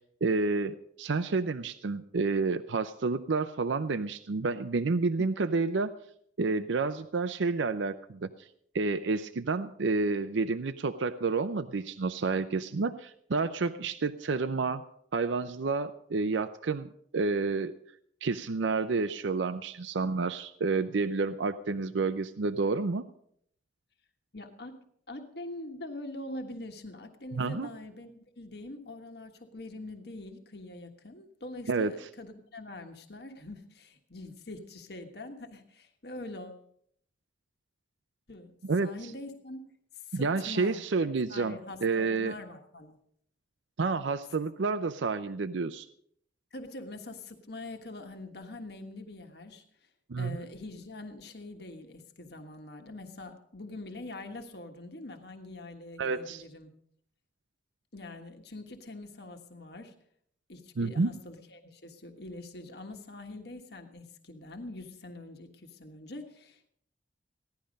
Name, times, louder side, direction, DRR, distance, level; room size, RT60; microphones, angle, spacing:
voice 1, 0.2-5.9 6.4-8.5 8.7-14.8 15.1-17.7 18.2-23.0 27.4-27.7 31.7-31.9 38.6-38.9 40.1-42.3 43.8-45.9 50.1-50.4 56.0-56.4 60.8-61.1, right 4 dB, 75° right, 10 dB, 0.5 m, -29 dB
voice 2, 24.3-24.7 25.1-36.6 38.3-38.5 38.8-39.7 40.0-40.8 41.3-43.0 46.5-49.6 50.2-56.7 57.9-59.9 60.5-66.7, left 2 dB, 55° left, 5 dB, 1.5 m, -44 dB
16.5 x 11.5 x 5.2 m, 0.68 s
head